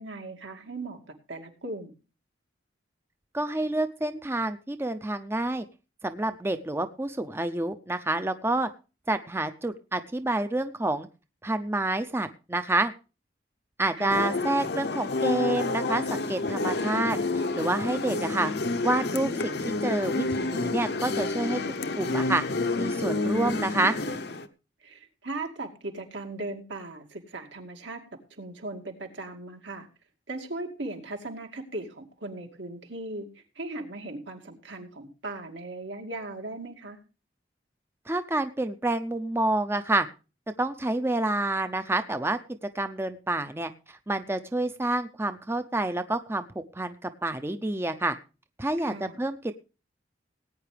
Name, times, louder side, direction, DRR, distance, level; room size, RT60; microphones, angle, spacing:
voice 1, 0.0-1.9 14.0-14.3 24.8-28.0 28.4-29.9 30.3-33.3 33.6-37.0 48.8-49.2, right 2 dB, 80° right, 3 dB, 2.4 m, -38 dB
voice 2, 3.3-5.7 6.0-8.7 9.1-11.1 11.4-12.9 13.8-18.5 18.8-21.6 22.0-22.4 22.8-24.0 38.1-40.1 40.6-42.4 42.7-48.2 48.6-49.5, right 2 dB, 15° right, 9 dB, 0.6 m, -28 dB
sound 1, 14.1-24.5, left 2 dB, 60° left, 0.9 m, -29 dB
18.5 x 9.3 x 3.3 m, 0.32 s
head